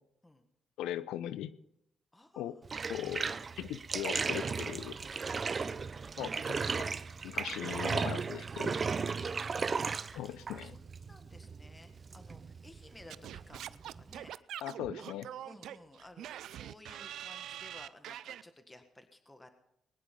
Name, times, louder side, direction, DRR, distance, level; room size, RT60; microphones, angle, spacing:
voice 1, 0.8-1.5 2.4-2.6 2.9-3.3 3.6-5.0 6.2-6.9 7.2-8.7 10.2-10.8 14.6-15.3, left 12 dB, 90° left, 15 dB, 0.8 m, -39 dB
voice 2, 2.1-2.8 9.2-14.3 15.0-19.5, left 1 dB, 15° left, 7 dB, 1.7 m, -57 dB
Bathtub (filling or washing), 2.6-14.3, right 5 dB, 35° right, 0.6 m, -36 dB
Singing / Scratching (performance technique), 13.1-18.4, right 11 dB, 80° right, 0.4 m, -44 dB
21.0 x 10.5 x 5.4 m, 0.80 s
cardioid pair, 90°, 0 cm